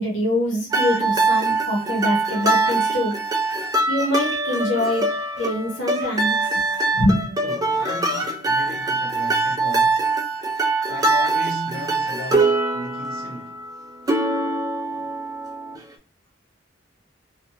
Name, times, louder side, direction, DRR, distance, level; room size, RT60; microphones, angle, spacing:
voice 1, 0.0-3.1 3.6-5.0 5.4-6.7 6.9-7.3, left 1 dB, 75° left, 0.8 m, -24 dB
sound 1, 0.7-15.8, right 3 dB, 20° right, 0.3 m, -23 dB
voice 2, 7.4-10.0 10.9-13.6, left 2 dB, 50° left, 0.9 m, -35 dB
2.7 x 2.1 x 2.7 m
head